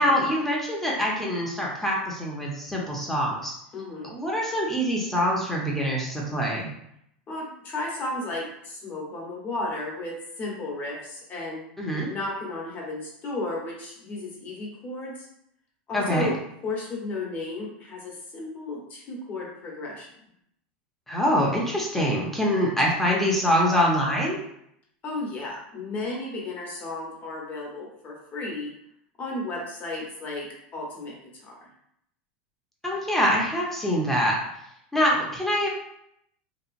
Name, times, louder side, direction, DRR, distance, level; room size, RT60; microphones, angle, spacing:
voice 1, 0.0-3.5 4.0-6.7 11.8-12.1 15.9-16.3 21.1-24.4 32.8-34.3 34.9-35.7, equal, 5° left, -4 dB, 0.7 m, -24 dB
voice 2, 3.7-4.1 7.3-11.6 12.1-15.3 15.9-16.3 16.6-20.1 25.0-28.7 29.2-30.5 30.7-31.1 31.4-31.7, left 2 dB, 35° left, -2 dB, 1.0 m, -34 dB
2.8 x 2.4 x 2.5 m, 0.75 s
supercardioid pair, 115°, 5 cm